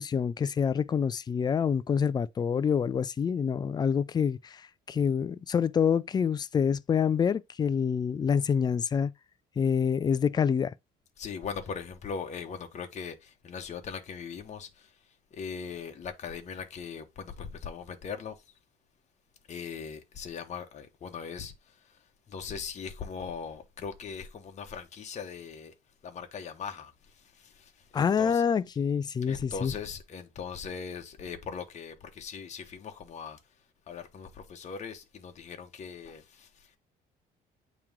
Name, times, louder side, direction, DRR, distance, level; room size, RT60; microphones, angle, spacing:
voice 1, 0.0-9.1 9.6-10.7 27.9-29.7, left 7 dB, 25° left, 0.4 m, -27 dB
voice 2, 11.2-15.0 15.3-18.4 19.5-25.7 26.0-28.4 29.3-33.4 33.9-36.8, left 6 dB, 45° left, 1.1 m, -40 dB
8.6 x 3.1 x 3.6 m
cardioid pair, 110°, 17 cm